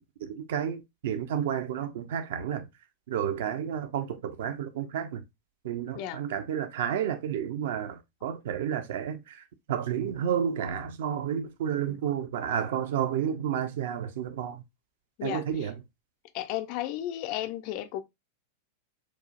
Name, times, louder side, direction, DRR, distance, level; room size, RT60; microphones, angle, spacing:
voice 1, 0.0-2.7 3.1-5.2 5.6-14.6 15.2-15.8, right 9 dB, 55° right, 0.4 m, -31 dB
voice 2, 15.2-15.7 16.3-18.0, left 13 dB, 45° left, 0.4 m, -34 dB
4.6 x 2.4 x 2.5 m
figure-of-eight pair, 90°, 0 cm